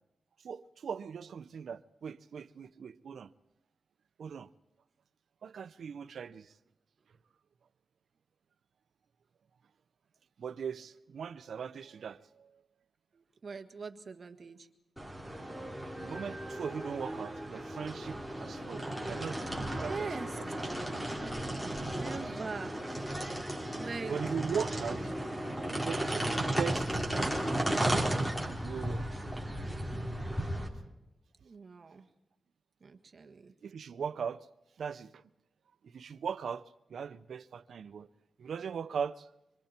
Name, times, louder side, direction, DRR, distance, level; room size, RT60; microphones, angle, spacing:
voice 1, 0.4-3.3 4.2-4.5 5.4-6.5 10.4-12.6 16.0-21.1 24.1-25.1 25.7-26.9 28.0-29.1 33.6-34.5 34.8-35.2 35.8-38.1 38.4-39.3, right 6 dB, 90° right, 0.7 m, -39 dB
voice 2, 13.1-14.7 19.6-20.4 22.0-22.8 23.8-24.2 31.4-32.1 32.8-33.5, right 4 dB, 45° right, 1.7 m, -42 dB
sound 1, 15.0-30.7, right 1 dB, 5° left, 3.3 m, -35 dB
25.0 x 25.0 x 4.4 m
wide cardioid pair, 160°, 0 cm